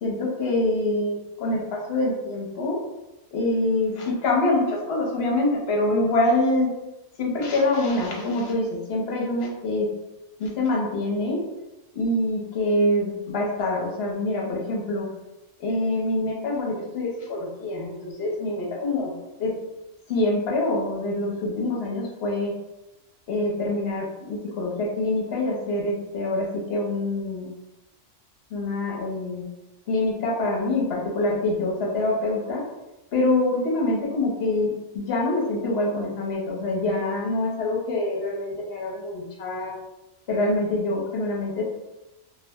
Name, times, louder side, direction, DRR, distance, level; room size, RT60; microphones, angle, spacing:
voice 1, 0.0-2.8 3.3-6.7 7.2-9.9 10.4-11.4 11.9-15.1 15.6-19.1 19.4-19.5 20.1-22.5 23.3-27.5 28.5-29.4 29.9-32.6 33.1-39.7 40.3-41.6, left 2 dB, 60° left, -2 dB, 0.9 m, -25 dB
2.3 x 2.0 x 3.4 m, 1.0 s
omnidirectional pair, 1.3 m